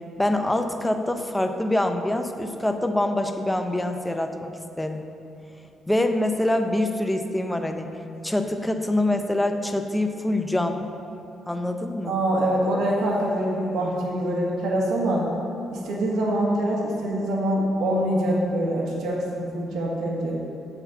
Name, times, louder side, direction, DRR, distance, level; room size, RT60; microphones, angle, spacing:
voice 1, 0.2-5.0 5.9-7.9 8.2-10.8 11.5-12.2, left 1 dB, 10° left, 6 dB, 0.6 m, -25 dB
voice 2, 12.0-15.3 15.7-20.4, right 1 dB, 75° right, -3 dB, 1.5 m, -24 dB
8.4 x 4.1 x 6.9 m, 2.8 s
cardioid pair, 90°, 0 cm